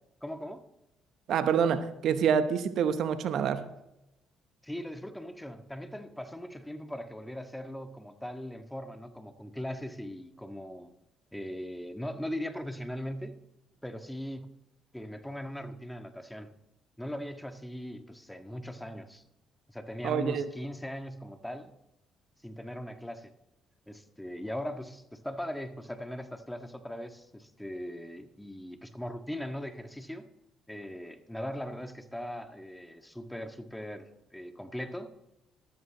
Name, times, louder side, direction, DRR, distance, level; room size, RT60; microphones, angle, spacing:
voice 1, 0.2-0.6 4.6-10.9 11.3-13.4 13.8-14.4 14.9-16.5 17.0-19.2 19.7-21.7 22.4-23.3 23.9-30.3 30.7-35.1, equal, 5° left, 1.7 m, -39 dB
voice 2, 1.3-3.7 20.0-20.5, right 7 dB, 65° right, 0.9 m, -27 dB
14.5 x 13.0 x 3.0 m
hypercardioid pair, 50°, 0 cm